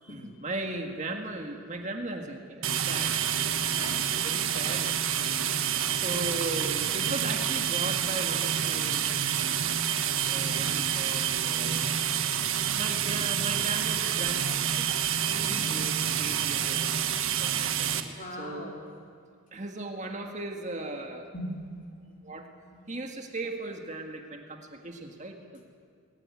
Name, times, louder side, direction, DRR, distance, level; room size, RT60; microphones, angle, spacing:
voice 1, 0.0-3.1 4.2-5.0 5.9-9.1 10.3-11.9 12.7-14.9 15.7-17.1 17.4-18.6 19.5-21.3 22.2-22.5 22.9-25.6, right 2 dB, 35° right, 4 dB, 1.7 m, -37 dB
sound 1, 2.6-18.0, right 9 dB, 75° right, 1.4 m, -28 dB
voice 2, 3.7-4.1 15.3-15.7 18.2-18.8 21.3-21.6 22.7-22.8, left 1 dB, 40° left, 0 dB, 4.0 m, -39 dB
20.5 x 19.0 x 9.6 m, 2.2 s
head